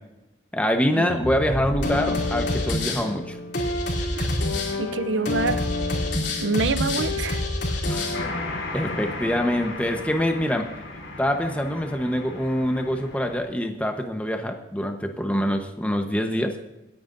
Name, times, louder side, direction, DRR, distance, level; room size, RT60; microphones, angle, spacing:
voice 1, 0.5-3.4 7.9-8.1 8.7-10.7 11.2-16.5, equal, 5° left, 5 dB, 1.0 m, -25 dB
sound 1, 1.1-8.2, left 2 dB, 65° left, 2.9 m, -27 dB
voice 2, 4.8-5.6 6.4-7.4, right 3 dB, 75° right, 12 dB, 0.6 m, -26 dB
sound 2, 8.1-13.4, left 2 dB, 90° left, 3.4 m, -35 dB
26.0 x 9.3 x 2.6 m, 0.98 s
head